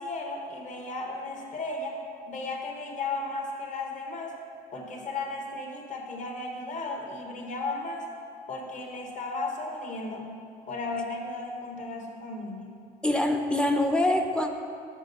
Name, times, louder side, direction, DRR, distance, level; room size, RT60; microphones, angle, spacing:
voice 1, 0.0-2.0 2.3-4.3 4.7-8.0 8.5-10.3 10.7-12.7, left 2 dB, 45° left, 1 dB, 1.2 m, -35 dB
voice 2, 13.0-14.5, left 1 dB, 5° left, 4 dB, 0.5 m, -24 dB
6.2 x 6.1 x 5.5 m, 2.5 s
cardioid pair, 110°, 17 cm